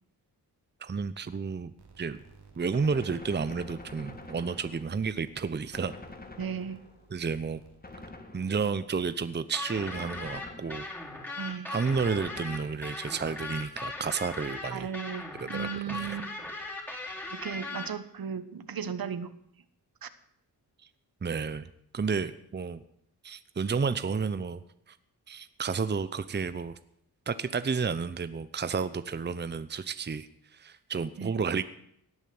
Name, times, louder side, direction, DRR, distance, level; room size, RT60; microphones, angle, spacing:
voice 1, 0.8-2.2 2.6-5.9 7.1-7.6 8.3-10.9 11.7-14.9 15.4-16.2 21.2-21.7 21.9-22.8 23.2-24.6 24.9-25.0 25.3-26.7 27.3-31.6, right 5 dB, 25° right, 13 dB, 0.8 m, -31 dB
sound 1, 1.8-8.6, right 5 dB, 85° right, 3.1 m, -57 dB
Gunshot gunfire, 2.7-5.2 5.7-7.1 7.8-8.9 9.8-11.2 11.9-13.1, left 2 dB, 25° left, 2.1 m, -47 dB
voice 2, 6.4-6.8 11.4-11.7 14.7-16.2 17.3-19.3 20.0-20.1 31.2-31.3, right 7 dB, 65° right, 12 dB, 1.2 m, -36 dB
sound 2, 9.5-17.9, left 2 dB, 5° left, 3.7 m, -38 dB
17.5 x 9.1 x 7.7 m, 0.73 s
cardioid pair, 75°, 39 cm